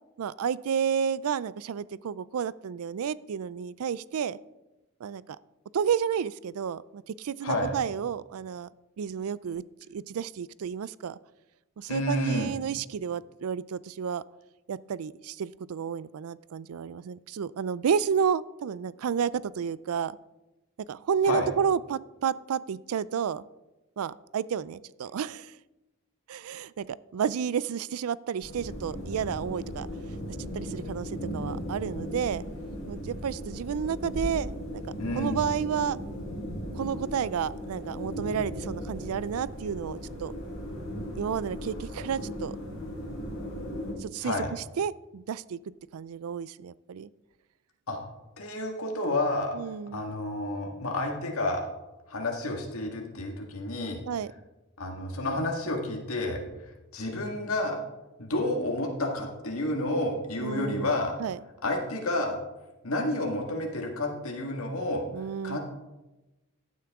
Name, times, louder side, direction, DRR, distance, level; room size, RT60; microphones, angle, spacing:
voice 1, 0.2-4.4 5.0-5.2 5.7-8.7 9.0-11.2 11.8-14.2 14.7-20.2 20.9-23.4 24.0-25.6 26.3-29.9 30.5-32.4 32.9-34.8 35.1-36.0 36.7-40.3 41.1-42.6 44.0-45.6 45.9-47.1 49.5-50.0 54.1-54.3 60.4-60.9 61.2-61.4 65.1-65.6, right 7 dB, 80° right, 20 dB, 0.4 m, -31 dB
voice 2, 11.9-12.5 21.2-21.5 35.0-35.4 44.2-44.5 47.9-48.0 48.4-49.5 49.9-51.6 52.1-54.0 54.8-56.4 56.9-57.8 58.2-61.1 61.6-62.4 62.8-65.0 65.4-65.6, left 1 dB, 75° left, 1 dB, 1.8 m, -30 dB
sound 1, 28.4-43.9, equal, 60° left, 4.7 m, -37 dB
15.0 x 8.3 x 3.6 m, 1.0 s
head